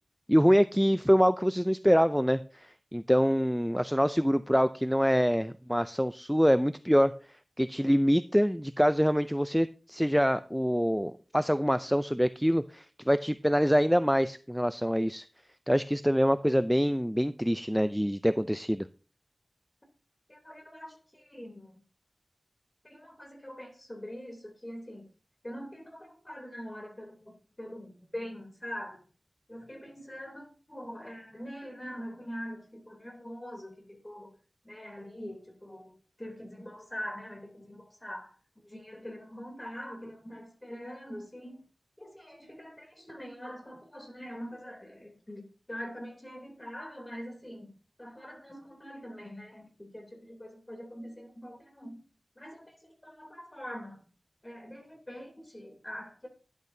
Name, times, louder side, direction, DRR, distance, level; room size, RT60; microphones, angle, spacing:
voice 1, 0.3-7.1 7.6-15.3 15.7-18.9, equal, ahead, 0.4 m, -25 dB
voice 2, 20.3-21.8 22.8-25.1 25.4-29.0 29.5-34.3 34.6-38.3 38.6-41.6 42.0-47.7 48.0-52.0 52.3-54.0 54.4-56.3, equal, 20° left, 3.0 m, -43 dB
12.0 x 10.5 x 2.7 m
wide cardioid pair, 80°, 0 cm